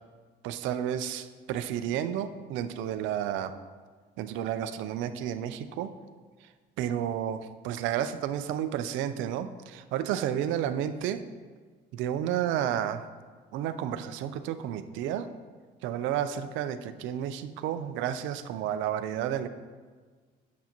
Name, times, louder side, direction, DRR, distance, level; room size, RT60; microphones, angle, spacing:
voice 1, 0.4-3.5 4.2-5.9 6.8-11.2 11.9-13.0 13.5-15.3 15.8-19.5, right 10 dB, 80° right, 10 dB, 0.5 m, -31 dB
9.4 x 7.1 x 3.0 m, 1.5 s
cardioid pair, 110°, 20 cm